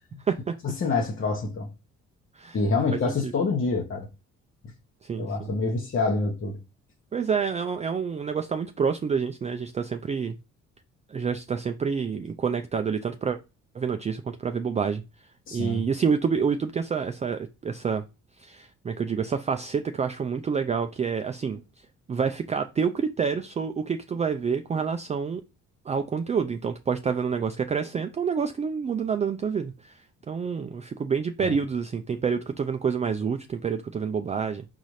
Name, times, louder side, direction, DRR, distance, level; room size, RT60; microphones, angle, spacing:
voice 1, 0.6-1.7 2.5-4.1 5.2-6.6 15.5-15.8 31.4-31.5, left 3 dB, 45° left, 1.0 m, -26 dB
voice 2, 5.0-5.5 7.1-10.4 11.1-13.4 13.7-15.0 15.5-18.0 18.4-21.6 22.1-25.4 25.9-30.0 30.3-34.7, right 6 dB, 25° right, 0.3 m, -28 dB
4.1 x 3.8 x 3.2 m
cardioid pair, 90°, 30 cm